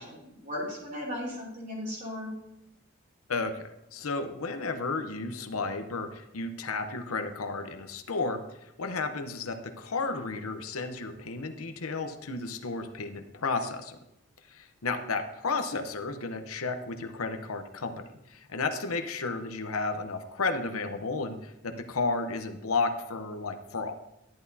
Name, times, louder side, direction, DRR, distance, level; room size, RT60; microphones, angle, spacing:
voice 1, 0.0-2.3, left 1 dB, 40° right, -4 dB, 3.7 m, -36 dB
voice 2, 3.3-8.4 8.8-14.0 14.5-23.9, left 3 dB, 85° left, 7 dB, 0.8 m, -33 dB
11.5 x 10.5 x 2.8 m, 0.85 s
head